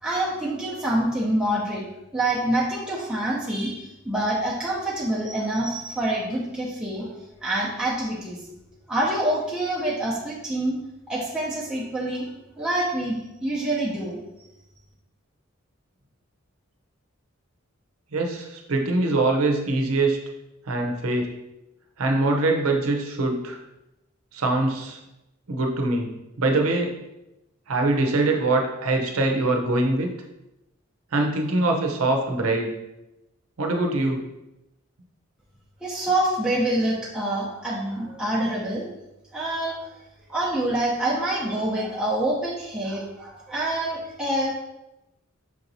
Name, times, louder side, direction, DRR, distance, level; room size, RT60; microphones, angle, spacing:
voice 1, 0.0-1.9 2.1-7.1 7.4-8.4 8.9-10.8 11.1-12.3 12.6-14.2 35.8-38.9 39.3-39.9 40.3-44.5, right 1 dB, 5° right, -7 dB, 0.6 m, -26 dB
voice 2, 18.1-20.2 20.7-21.3 22.0-23.6 24.3-25.0 25.5-27.0 27.7-30.1 31.1-32.7 33.6-34.2, right 2 dB, 90° right, 3 dB, 0.7 m, -23 dB
5.9 x 2.9 x 2.6 m, 0.93 s
head